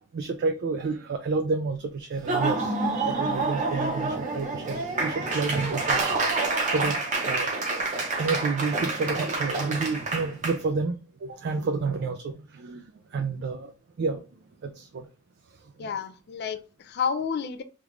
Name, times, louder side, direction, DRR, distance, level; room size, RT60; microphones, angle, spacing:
voice 1, 0.1-6.0 6.7-7.0 7.2-7.5 8.2-12.8 13.1-13.7 14.0-14.2 14.6-15.1 15.8-15.9, right 4 dB, 55° right, 6 dB, 0.3 m, -30 dB
Laughter / Applause, 2.1-10.6, right 3 dB, 40° right, 0.7 m, -28 dB
voice 2, 15.8-17.6, left 6 dB, 55° left, 9 dB, 0.4 m, -30 dB
3.4 x 2.4 x 3.0 m, 0.34 s
head